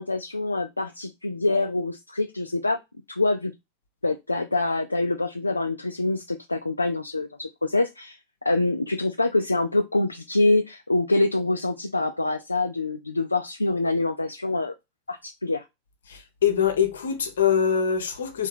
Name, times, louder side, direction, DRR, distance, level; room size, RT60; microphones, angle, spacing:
voice 1, 0.0-2.8 3.1-3.5 4.0-8.2 8.4-14.7 15.1-15.6, left 2 dB, 80° left, 0.3 m, -25 dB
voice 2, 16.1-18.5, left 8 dB, 65° left, 0.8 m, -23 dB
3.3 x 2.6 x 3.2 m
figure-of-eight pair, 90°, 0 cm